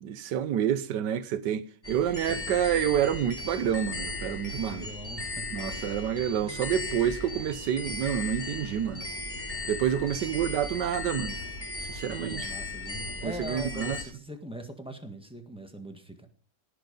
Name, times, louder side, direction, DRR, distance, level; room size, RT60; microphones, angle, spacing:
voice 1, 0.0-4.9 5.5-9.0 9.7-11.3 11.9-12.5 13.2-14.0, right 9 dB, 65° right, 1.4 m, -28 dB
sound 1, 1.8-14.0, left 2 dB, 20° left, 3.1 m, -37 dB
voice 2, 2.3-2.6 4.6-5.3 6.4-6.7 12.0-16.3, right 1 dB, 5° right, 1.5 m, -42 dB
18.0 x 6.8 x 5.2 m
omnidirectional pair, 2.1 m